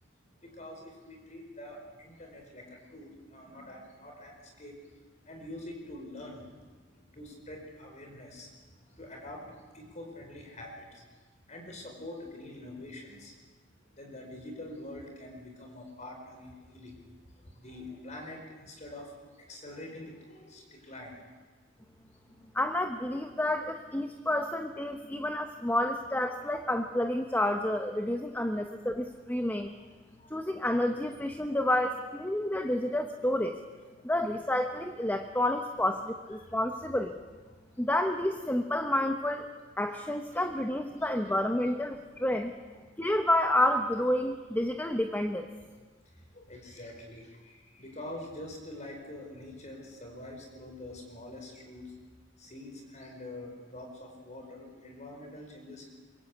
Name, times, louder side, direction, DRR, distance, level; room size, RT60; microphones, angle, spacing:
voice 1, 0.3-4.8 5.2-11.0 11.5-13.3 13.9-17.0 17.4-21.2 22.2-22.3 29.6-29.8 30.2-30.3 36.3-36.5 46.1-51.9 52.4-55.9, left 1 dB, 40° left, 2 dB, 4.9 m, -45 dB
voice 2, 22.5-29.7 30.3-33.6 34.0-37.1 37.8-39.5 39.8-42.5 43.0-45.5, left 1 dB, 10° left, 5 dB, 1.1 m, -29 dB
24.5 x 22.5 x 8.5 m, 1.4 s
head